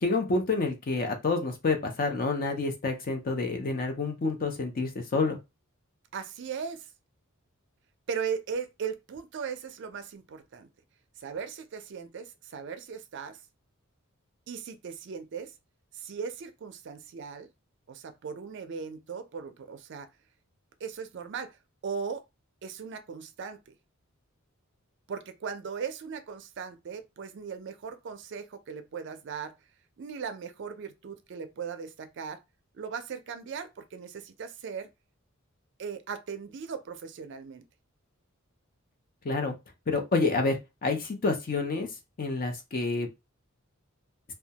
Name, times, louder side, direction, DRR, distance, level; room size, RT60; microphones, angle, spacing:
voice 1, 0.0-5.4 39.2-39.6 39.9-41.9 42.2-43.1, left 3 dB, 40° left, 0.5 m, -28 dB
voice 2, 6.1-6.9 8.1-10.7 11.2-13.4 14.5-15.5 15.9-17.5 17.9-20.1 20.8-22.2 22.6-23.7 25.1-29.6 30.0-32.4 32.7-34.9 35.8-37.6, right 6 dB, 55° right, 0.4 m, -38 dB
2.2 x 2.1 x 2.8 m
head